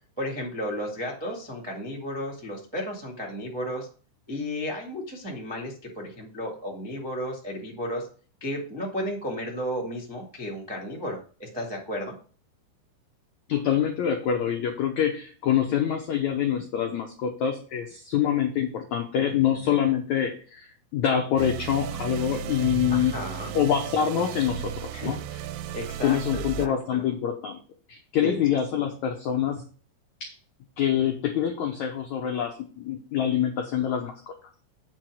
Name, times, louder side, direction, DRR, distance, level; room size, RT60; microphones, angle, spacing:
voice 1, 0.2-3.9 4.3-8.1 8.4-12.1 19.2-19.3 19.6-19.9 22.9-23.5 24.9-25.2 25.7-27.0 28.2-28.4 28.7-28.9, equal, 30° right, -2 dB, 0.4 m, -33 dB
voice 2, 13.5-23.1 23.5-25.2 26.0-27.6 27.9-29.6 30.2-30.3 30.8-34.3, left 9 dB, 90° left, 3 dB, 1.6 m, -26 dB
sound 1, 21.4-26.7, right 9 dB, 80° right, 2.1 m, -35 dB
8.8 x 4.5 x 6.3 m, 0.40 s
omnidirectional pair, 4.8 m